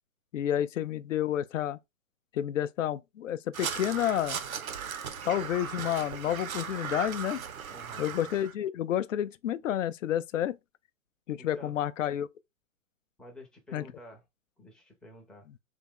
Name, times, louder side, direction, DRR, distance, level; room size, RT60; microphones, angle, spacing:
voice 1, 0.3-1.8 2.3-4.4 5.2-7.4 8.0-10.6 11.3-12.3 13.7-13.8, left 11 dB, 65° left, 0.5 m, -30 dB
Crow, 3.5-8.5, right 7 dB, 80° right, 0.8 m, -37 dB
voice 2, 7.7-8.1 11.4-11.8 13.2-14.2 14.6-15.5, left 1 dB, ahead, 0.5 m, -50 dB
3.6 x 2.8 x 3.7 m
hypercardioid pair, 125°, 41 cm